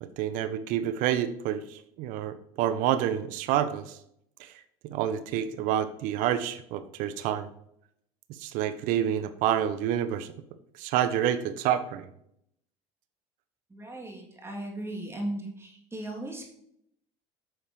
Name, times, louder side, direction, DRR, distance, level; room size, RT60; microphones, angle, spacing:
voice 1, 0.0-4.0 4.4-4.5 4.8-7.5 8.4-10.3 10.8-12.1, right 10 dB, 65° right, 13 dB, 0.7 m, -28 dB
voice 2, 13.7-16.5, right 1 dB, 15° right, -1 dB, 2.7 m, -37 dB
9.1 x 6.6 x 3.2 m, 0.73 s
hypercardioid pair, 75°, 15 cm